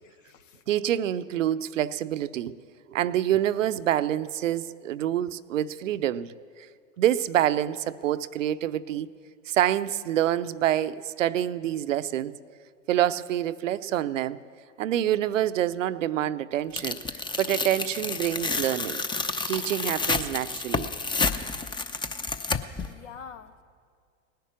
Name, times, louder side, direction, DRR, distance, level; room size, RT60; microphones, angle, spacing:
voice 1, 0.0-0.6 22.8-23.6, left 7 dB, 75° left, 13 dB, 1.0 m, -46 dB
voice 2, 0.7-2.6 2.9-6.3 7.0-9.1 9.5-12.3 12.9-14.4 14.8-19.0 19.5-20.9, right 11 dB, 80° right, 15 dB, 0.6 m, -27 dB
Tearing, 16.8-22.9, left 3 dB, 10° left, 0.6 m, -30 dB
18.0 x 10.5 x 7.3 m, 2.2 s
hypercardioid pair, 85°, 38 cm